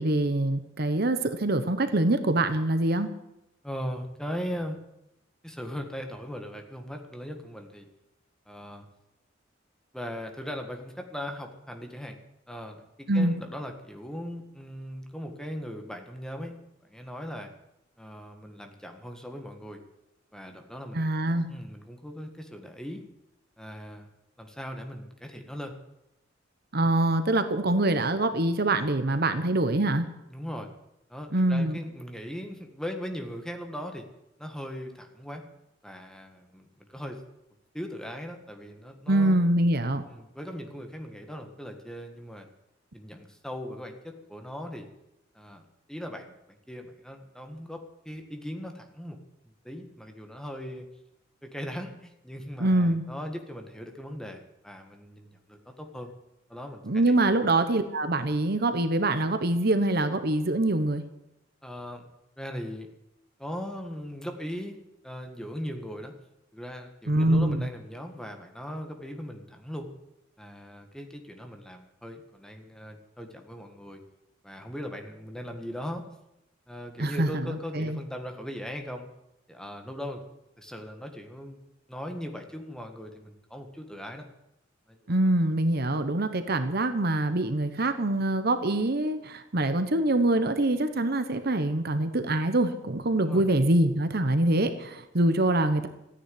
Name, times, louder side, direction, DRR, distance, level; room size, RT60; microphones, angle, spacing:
voice 1, 0.0-3.1 13.1-13.3 20.9-21.5 26.7-30.1 31.3-31.8 39.1-40.0 52.6-53.0 56.9-61.0 67.1-67.6 77.0-78.0 85.1-95.9, right 1 dB, 55° right, 9 dB, 1.1 m, -24 dB
voice 2, 3.6-4.8 5.4-7.9 8.5-8.9 9.9-12.2 12.5-16.5 16.8-17.5 18.0-19.8 20.3-21.0 21.5-23.0 23.6-24.1 24.4-25.7 30.3-30.7 31.1-34.1 34.4-35.4 35.8-37.2 37.7-39.4 40.1-42.5 42.9-44.9 45.3-45.6 45.9-46.3 46.7-49.2 49.5-50.9 51.4-56.1 56.5-57.3 61.6-62.0 62.4-62.9 63.4-64.8 65.0-66.1 66.5-69.9 70.4-74.0 74.4-76.0 76.7-79.1 79.5-80.2 80.6-81.6 81.9-84.3 84.9-85.3 93.2-93.4, equal, 5° left, 4 dB, 1.7 m, -39 dB
14.5 x 10.0 x 9.5 m, 0.86 s
head